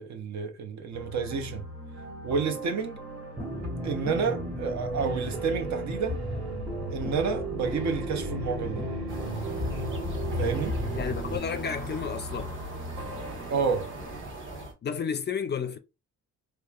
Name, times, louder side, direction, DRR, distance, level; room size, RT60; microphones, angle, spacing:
voice 1, 0.0-1.7 2.2-3.1 3.8-6.2 6.9-8.8 10.4-10.8 13.5-13.9, right 5 dB, 65° right, 0.8 m, -30 dB
sound 1, 0.9-14.2, left 1 dB, 85° right, 1.6 m, -41 dB
sound 2, 3.4-11.4, right 1 dB, 5° right, 0.7 m, -33 dB
sound 3, 9.1-14.7, right 2 dB, 40° right, 1.3 m, -40 dB
voice 2, 10.9-12.5 14.8-15.8, left 7 dB, 35° left, 0.4 m, -31 dB
2.9 x 2.2 x 2.4 m
cardioid pair, 90°, 30 cm